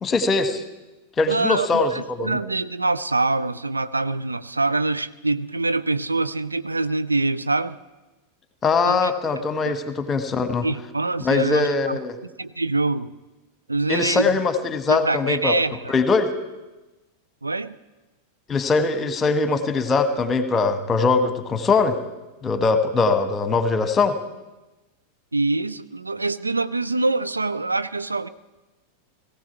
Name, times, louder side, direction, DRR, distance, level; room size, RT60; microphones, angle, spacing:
voice 1, 0.0-0.6 1.2-2.4 8.6-10.7 11.2-12.2 13.9-15.5 15.9-16.3 18.5-22.0 22.4-24.2, left 4 dB, 20° left, 9 dB, 1.3 m, -21 dB
voice 2, 1.3-7.8 8.8-9.1 9.6-9.7 10.6-12.0 12.4-13.1 13.7-14.4 14.9-15.9 17.4-17.8 25.3-28.3, right 3 dB, 80° right, 14 dB, 0.5 m, -25 dB
18.5 x 16.5 x 4.6 m, 1.1 s
figure-of-eight pair, 90°, 0 cm